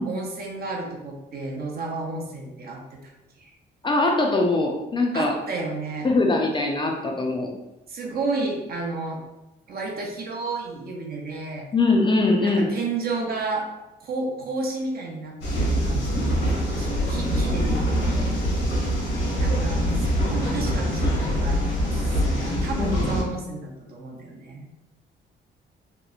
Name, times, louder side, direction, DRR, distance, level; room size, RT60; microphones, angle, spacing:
voice 1, 0.0-3.1 3.4-3.5 5.1-6.1 7.9-9.2 9.7-11.6 12.4-13.7 14.0-18.4 19.4-24.7, right 3 dB, 50° right, 0 dB, 0.6 m, -32 dB
voice 2, 3.8-5.3 6.0-7.5 11.7-12.7 22.4-22.5 22.8-23.3, left 2 dB, 25° left, 1 dB, 0.4 m, -22 dB
sound 1, 15.4-23.2, equal, 75° left, 1.1 m, -24 dB
2.9 x 2.0 x 2.4 m, 0.96 s
cardioid pair, 90°, 20 cm